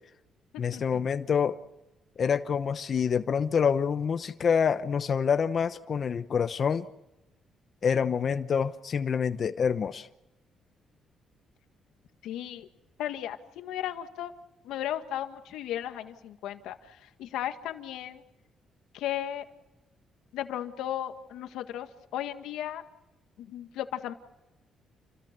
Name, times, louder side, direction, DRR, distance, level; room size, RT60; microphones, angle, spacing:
voice 1, 0.6-1.6 2.2-6.8 7.8-10.1, left 6 dB, 50° left, 0.9 m, -27 dB
voice 2, 12.2-12.7 13.0-14.3 14.6-18.2 18.9-19.5 20.3-22.8 23.4-24.1, left 11 dB, 90° left, 1.8 m, -35 dB
29.0 x 23.0 x 6.8 m
cardioid pair, 90°, 0 cm